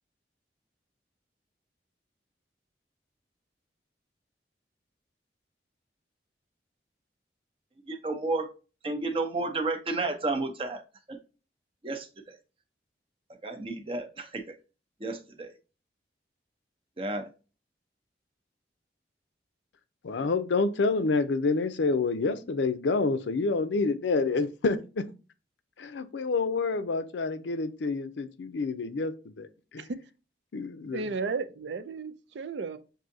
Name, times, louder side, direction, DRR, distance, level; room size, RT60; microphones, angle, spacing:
voice 1, 7.9-8.5 8.8-11.2 11.8-12.4 13.4-14.5 15.0-15.5 17.0-17.3, right 2 dB, 30° right, 0.6 m, -32 dB
voice 2, 20.0-25.0 25.8-29.5 29.7-29.9 30.5-31.0, left 3 dB, 85° left, 0.5 m, -28 dB
voice 3, 30.9-32.8, right 4 dB, 80° right, 0.4 m, -34 dB
6.1 x 2.7 x 2.6 m
head